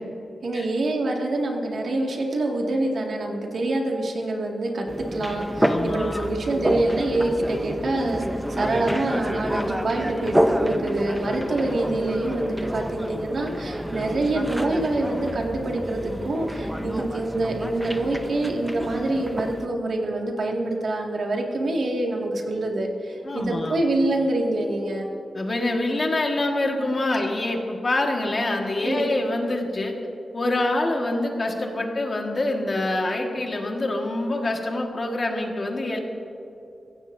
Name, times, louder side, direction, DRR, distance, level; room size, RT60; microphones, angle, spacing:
voice 1, 0.4-8.2 8.5-25.1 28.8-29.1, right 2 dB, 55° right, 0 dB, 2.0 m, -26 dB
sound 1, 4.9-19.7, equal, 5° right, 0.7 m, -28 dB
voice 2, 5.6-6.2 23.2-23.8 25.3-29.9 30.3-36.0, left 2 dB, 35° left, 1 dB, 1.6 m, -25 dB
23.5 x 16.5 x 2.6 m, 2.9 s
wide cardioid pair, 165°, 0 cm